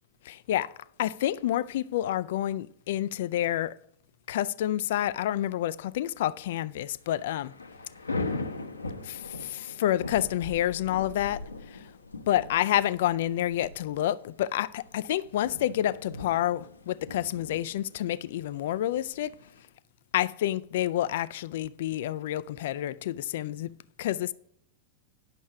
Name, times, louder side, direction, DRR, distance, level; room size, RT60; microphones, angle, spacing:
voice 1, 0.3-0.7 1.0-3.7 4.3-7.5 9.0-11.8 12.3-19.3 20.1-23.7 24.0-24.3, left 12 dB, 55° left, 0.4 m, -29 dB
Thunder / Rain, 6.9-19.6, left 3 dB, 80° left, 0.8 m, -40 dB
10.5 x 6.3 x 5.7 m
figure-of-eight pair, 90°, 0 cm